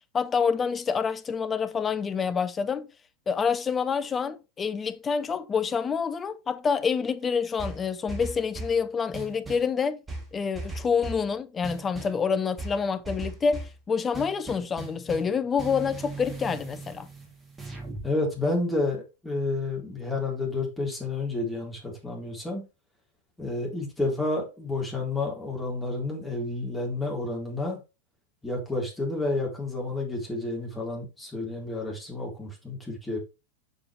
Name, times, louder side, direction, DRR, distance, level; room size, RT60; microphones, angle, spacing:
voice 1, 0.1-2.9 3.3-10.0 10.3-17.1, left 6 dB, 20° left, 0.7 m, -27 dB
sound 1, 7.6-8.8 9.1-9.7 10.1-11.3 11.6-12.2 12.6-13.8 14.1-15.3 15.6-18.1, right 3 dB, 10° right, 2.9 m, -38 dB
voice 2, 18.0-22.6 23.4-27.8 28.4-33.2, left 2 dB, 5° left, 3.8 m, -30 dB
7.2 x 6.8 x 3.3 m
figure-of-eight pair, 90°, 0 cm